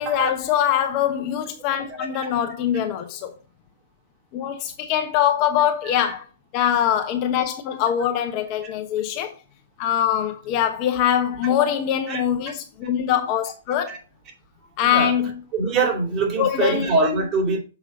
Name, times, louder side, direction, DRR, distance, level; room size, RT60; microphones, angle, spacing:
voice 1, 0.0-3.3 4.3-6.3 6.5-9.3 9.8-14.0 14.8-15.3 16.4-16.9, left 10 dB, 35° left, 1.2 m, -23 dB
voice 2, 1.7-2.1 5.8-6.0 12.1-12.2 13.9-14.0 14.8-15.1 15.5-17.6, right 3 dB, 30° right, 3.1 m, -23 dB
7.2 x 4.9 x 5.1 m
hypercardioid pair, 125°, 0 cm